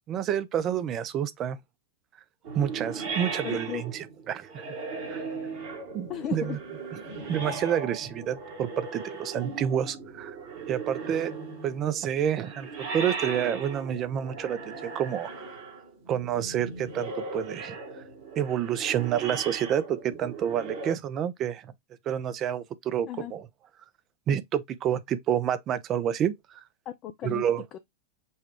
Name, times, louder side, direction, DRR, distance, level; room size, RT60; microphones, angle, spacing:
voice 1, 0.1-1.6 2.5-3.8 4.3-4.7 5.1-5.2 5.9-6.6 7.3-10.4 10.7-11.3 11.6-15.3 16.1-17.8 18.4-21.7 22.1-23.4 24.3-26.6 27.2-27.6, right 9 dB, 30° right, 0.5 m, -29 dB
sound 1, 2.4-20.9, right 4 dB, 50° right, 1.4 m, -38 dB
voice 2, 3.4-3.8 6.1-6.6 23.1-23.3 26.9-27.4 27.7-27.8, left 10 dB, 35° left, 0.4 m, -35 dB
5.5 x 2.3 x 2.9 m
figure-of-eight pair, 90°, 0 cm